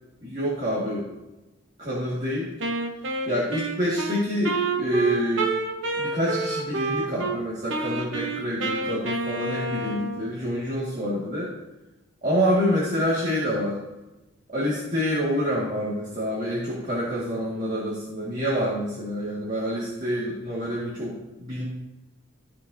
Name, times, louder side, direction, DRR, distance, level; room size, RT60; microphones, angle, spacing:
voice 1, 0.2-1.1 1.8-2.5 3.3-5.5 6.0-11.5 12.2-13.8 14.5-21.6, equal, 35° right, -8 dB, 1.9 m, -27 dB
Wind instrument woodwind instrument, 2.6-7.4 7.7-10.3, right 3 dB, 60° right, 0.9 m, -29 dB
15.0 x 5.2 x 2.7 m, 1.0 s
head